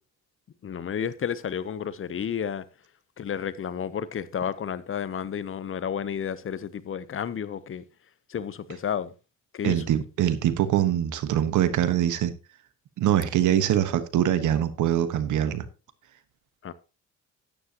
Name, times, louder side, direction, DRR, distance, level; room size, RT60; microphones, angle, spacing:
voice 1, 0.6-2.6 3.2-7.8 8.3-9.1 9.5-9.8 16.6-16.7, left 8 dB, 45° left, 0.8 m, -31 dB
voice 2, 9.6-12.3 13.0-15.6, right 11 dB, 80° right, 1.3 m, -23 dB
12.0 x 10.0 x 2.9 m
cardioid pair, 90°, 30 cm